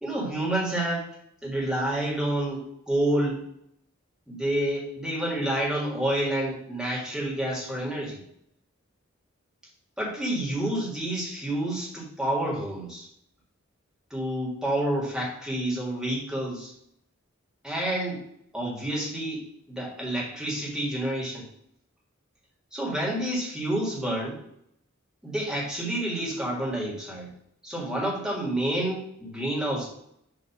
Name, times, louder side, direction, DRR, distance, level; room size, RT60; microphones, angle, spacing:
voice 1, 0.0-1.1 1.4-3.4 4.3-8.2 10.0-13.1 14.1-16.7 17.6-18.2 18.5-21.5 22.7-24.4 25.2-27.3 27.6-29.9, right 1 dB, 5° right, -4 dB, 1.7 m, -29 dB
6.9 x 2.9 x 5.9 m, 0.73 s
head